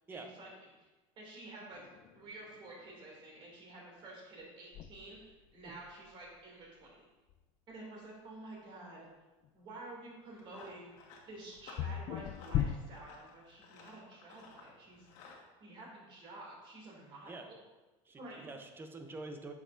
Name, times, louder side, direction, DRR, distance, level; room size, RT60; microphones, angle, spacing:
voice 1, 0.1-0.5 0.8-0.9 1.2-1.8 2.1-7.0 7.7-9.1 9.5-10.9 11.3-15.1 15.6-17.6 18.1-18.5, right 2 dB, 40° right, -2 dB, 2.5 m, -50 dB
sound 1, 1.7-3.4 4.4-4.5 4.7-6.3 6.6-6.8 7.3-7.4 9.4-9.5 11.6-12.8, left 10 dB, 45° left, 0.4 m, -38 dB
Run, 10.1-15.4, left 4 dB, 65° left, 1.4 m, -57 dB
voice 2, 18.0-19.5, right 3 dB, 15° right, 5 dB, 0.7 m, -46 dB
8.4 x 7.1 x 2.6 m, 1.2 s
cardioid pair, 145°, 13 cm